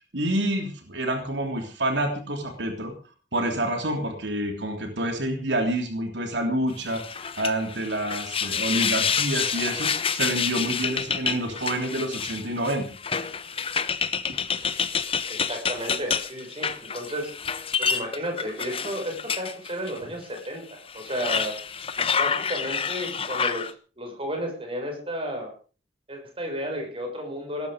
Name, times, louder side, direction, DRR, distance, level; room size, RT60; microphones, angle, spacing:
voice 1, 0.1-2.9 3.3-12.8, right 1 dB, 75° right, 4 dB, 3.2 m, -28 dB
sound 1, 6.9-20.0 20.4-20.5 20.9-23.7, left 6 dB, 30° left, 1.2 m, -28 dB
voice 2, 15.3-17.3 17.8-21.6 22.2-23.7 24.0-25.5 26.1-27.7, equal, 30° right, 3 dB, 6.3 m, -33 dB
18.5 x 13.0 x 5.2 m, 0.38 s
head